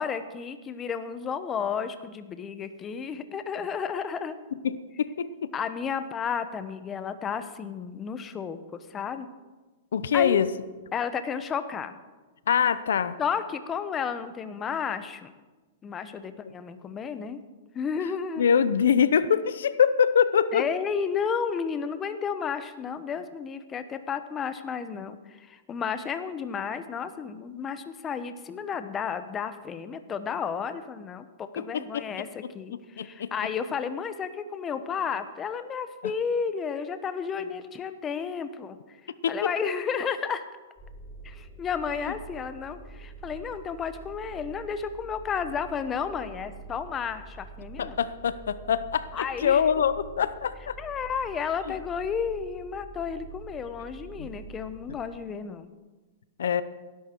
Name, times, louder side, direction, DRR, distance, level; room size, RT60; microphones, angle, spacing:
voice 1, 0.0-4.3 5.5-9.3 10.1-10.4 10.9-12.0 13.2-15.3 15.8-17.4 17.7-18.5 20.5-38.8 39.3-40.4 41.2-48.0 49.1-49.8 50.8-55.7, left 6 dB, 20° left, 10 dB, 0.9 m, -32 dB
voice 2, 4.6-5.5 9.9-10.5 12.5-13.2 18.4-20.7 31.6-32.0 33.0-33.3 39.2-39.4 47.8-49.1 49.4-50.8 54.2-54.3 56.4-56.6, left 7 dB, 85° left, 15 dB, 0.7 m, -24 dB
sound 1, 40.8-54.8, right 4 dB, 5° left, 5.6 m, -46 dB
18.5 x 11.0 x 4.5 m, 1.3 s
hypercardioid pair, 140°, 0 cm